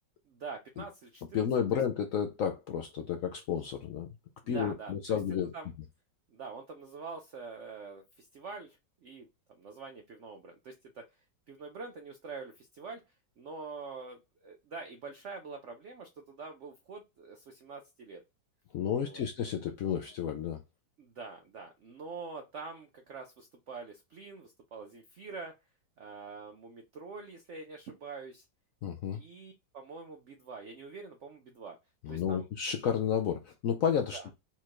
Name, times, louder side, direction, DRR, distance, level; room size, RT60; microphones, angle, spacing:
voice 1, 0.3-1.8 4.5-5.2 5.5-5.7 6.3-9.3 9.6-11.0 11.5-13.0 13.4-18.2 19.0-19.2 21.0-25.5 26.0-28.4 29.1-31.8 32.1-32.4 34.1-34.3, right 4 dB, 75° right, 0.6 m, -45 dB
voice 2, 1.3-4.1 4.5-5.5 18.7-20.6 28.8-29.2 32.0-34.3, left 8 dB, 70° left, 0.8 m, -31 dB
4.3 x 2.5 x 4.5 m
omnidirectional pair, 1.9 m